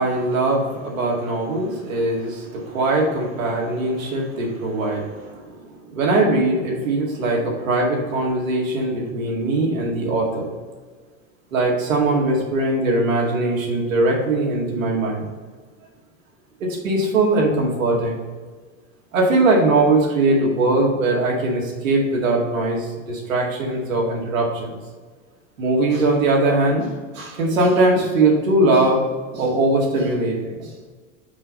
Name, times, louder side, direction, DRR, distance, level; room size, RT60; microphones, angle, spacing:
voice 1, 0.0-10.6 11.5-15.3 16.6-18.2 19.1-24.8 25.6-29.0 29.3-30.7, right 2 dB, 80° right, -1 dB, 2.1 m, -21 dB
6.1 x 5.0 x 5.2 m, 1.4 s
hypercardioid pair, 90°, 39 cm